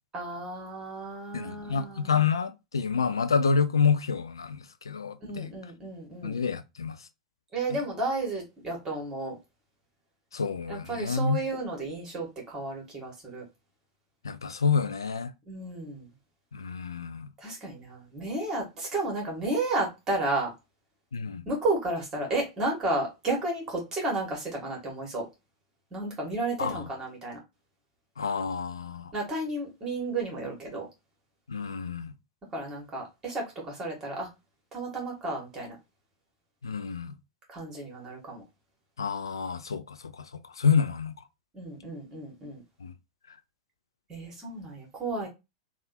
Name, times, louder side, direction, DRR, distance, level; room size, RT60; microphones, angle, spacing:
voice 1, 0.1-2.1 5.2-6.4 7.5-9.4 10.7-13.4 15.5-16.1 17.4-20.5 21.5-25.3 25.9-27.4 29.1-30.9 32.5-34.3 34.7-35.8 37.5-38.4 40.6-40.7 41.5-42.6 44.1-45.3, right 2 dB, 25° right, 1.7 m, -32 dB
voice 2, 1.3-5.5 6.2-7.0 7.7-7.8 10.3-11.4 14.2-15.3 16.5-17.3 21.1-21.5 26.6-26.9 28.2-29.1 31.5-32.1 36.6-37.2 39.0-40.3 40.6-41.2 42.8-42.9, left 6 dB, 75° left, 0.5 m, -28 dB
3.6 x 2.4 x 4.1 m
figure-of-eight pair, 90°, 2 cm